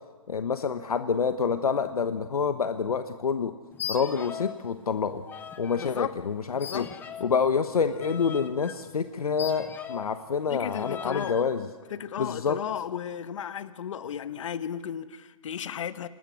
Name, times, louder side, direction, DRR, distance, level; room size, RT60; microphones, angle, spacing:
voice 1, 0.3-3.5 3.9-5.2 5.6-6.9 7.2-11.7 12.2-12.6, left 6 dB, 85° left, 9 dB, 1.2 m, -27 dB
sound 1, 3.7-4.6 4.9-5.9 6.6-10.2 10.7-11.4, left 8 dB, 10° left, 0.8 m, -40 dB
voice 2, 5.8-6.1 6.6-6.9 10.5-11.4 11.9-16.1, left 9 dB, 60° left, 13 dB, 1.2 m, -34 dB
26.5 x 19.5 x 6.3 m, 1.4 s
hypercardioid pair, 150°, 18 cm